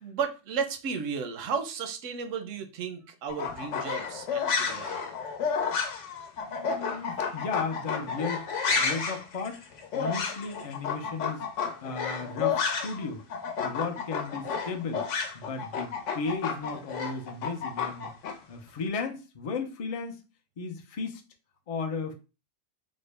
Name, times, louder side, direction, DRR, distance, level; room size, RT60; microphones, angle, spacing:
voice 1, 0.0-5.1, right 6 dB, 85° right, 8 dB, 1.0 m, -34 dB
sound 1, 3.3-13.0 13.3-18.3, left 5 dB, 75° left, 1.0 m, -31 dB
voice 2, 6.5-8.4 8.8-9.6 9.9-11.4 11.8-13.2 13.6-15.1 15.3-18.1 18.5-20.2 20.6-21.2 21.7-22.1, left 4 dB, 60° left, 5 dB, 0.3 m, -35 dB
3.6 x 2.1 x 3.2 m, 0.31 s
omnidirectional pair, 1.3 m